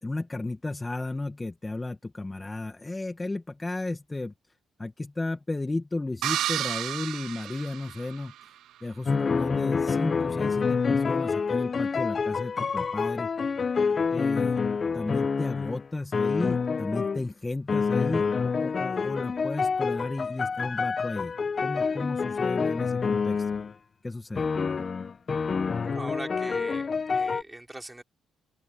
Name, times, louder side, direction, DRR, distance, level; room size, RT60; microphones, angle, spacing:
voice 1, 0.0-4.3 4.8-13.3 14.1-14.6 14.9-23.6 24.0-24.5, left 2 dB, 20° left, 1.7 m, -34 dB
sound 1, 6.2-8.4, right 12 dB, 80° right, 0.7 m, -31 dB
sound 2, 9.1-17.2 17.7-23.7 24.4-27.4, left 5 dB, 40° left, 0.9 m, -27 dB
voice 2, 25.8-28.0, right 1 dB, 10° right, 4.1 m, -40 dB
cardioid pair, 90°, 0 cm